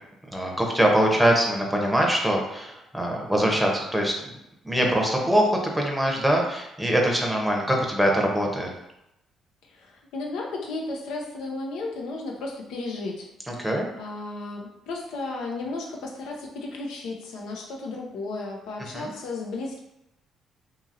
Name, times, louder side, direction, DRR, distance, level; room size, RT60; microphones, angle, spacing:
voice 1, 0.3-4.1 4.6-8.7 13.5-13.9 18.9-19.1, right 1 dB, 5° right, 0 dB, 0.8 m, -23 dB
voice 2, 9.6-19.8, left 3 dB, 80° left, 0 dB, 0.5 m, -34 dB
2.8 x 2.7 x 2.5 m, 0.86 s
supercardioid pair, 65°, 0 cm